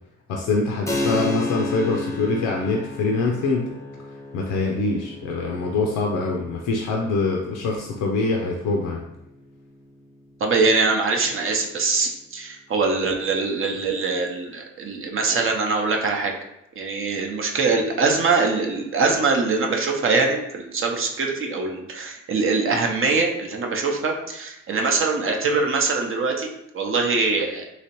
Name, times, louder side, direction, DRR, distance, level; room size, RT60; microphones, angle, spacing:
voice 1, 0.3-3.7 4.3-9.0, left 3 dB, 85° left, 0 dB, 0.5 m, -24 dB
Keyboard (musical), 0.9-11.1, left 2 dB, 10° left, 0.6 m, -34 dB
voice 2, 10.4-16.3 16.8-27.6, right 4 dB, 45° right, 2 dB, 0.6 m, -23 dB
3.2 x 2.9 x 2.9 m, 0.84 s
cardioid pair, 90°, 30 cm